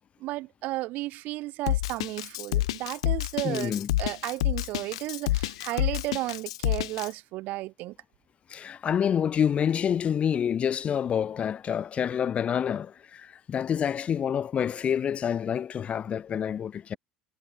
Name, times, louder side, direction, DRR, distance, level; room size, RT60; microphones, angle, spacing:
voice 1, 0.2-3.7 4.0-8.0, right 18 dB, 65° right, 7.0 m, -33 dB
Drum kit, 1.7-7.1, left 16 dB, 80° left, 0.4 m, -28 dB
voice 2, 3.4-3.9 8.5-16.9, left 8 dB, 40° left, 3.7 m, -27 dB
hypercardioid pair, 70°, 3 cm